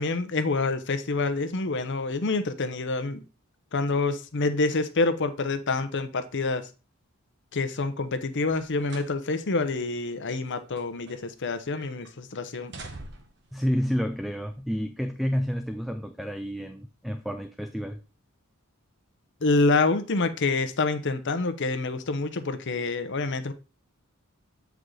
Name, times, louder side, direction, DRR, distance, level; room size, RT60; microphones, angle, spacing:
voice 1, 0.0-3.2 3.7-6.7 7.5-12.7 19.4-23.5, left 3 dB, 55° left, 0.8 m, -27 dB
sound 1, 8.4-9.2 9.6-9.7 10.4-11.5 11.8-12.1 12.5-13.5 14.3-14.5, right 2 dB, 50° right, 1.1 m, -45 dB
voice 2, 13.5-18.0, equal, ahead, 0.3 m, -30 dB
8.1 x 4.7 x 3.8 m
head